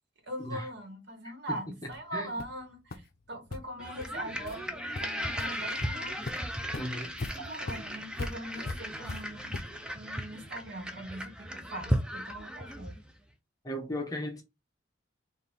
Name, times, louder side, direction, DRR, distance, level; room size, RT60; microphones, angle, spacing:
voice 1, 0.2-4.6 5.0-6.2 7.4-9.5 9.9-13.0, right 1 dB, 55° right, 1.5 m, -41 dB
sound 1, 1.9-2.0 2.4-2.6 2.9-3.0 3.5-3.6 4.0-4.1 4.5-4.6 5.0-5.5 5.8-5.9 6.3-9.9, left 3 dB, 50° left, 0.5 m, -40 dB
sound 2, 3.8-13.1, equal, 5° right, 0.5 m, -36 dB
voice 2, 6.8-7.1 13.6-14.4, left 1 dB, 20° left, 0.9 m, -36 dB
4.1 x 2.6 x 3.5 m
head